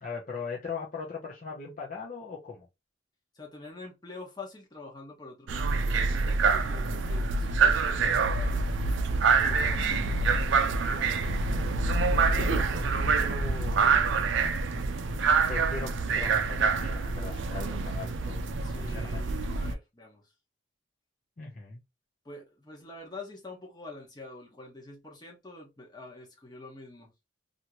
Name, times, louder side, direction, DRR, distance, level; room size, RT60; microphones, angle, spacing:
voice 1, 0.0-2.7 9.8-10.4 11.9-14.1 15.5-18.4 18.8-19.2 21.4-21.8, left 4 dB, 40° left, 0.6 m, -40 dB
voice 2, 3.3-8.6 9.4-10.4 18.6-20.3 22.2-27.1, left 3 dB, 20° left, 1.0 m, -46 dB
sound 1, 5.5-19.7, right 4 dB, 70° right, 0.4 m, -26 dB
2.9 x 2.6 x 2.9 m
head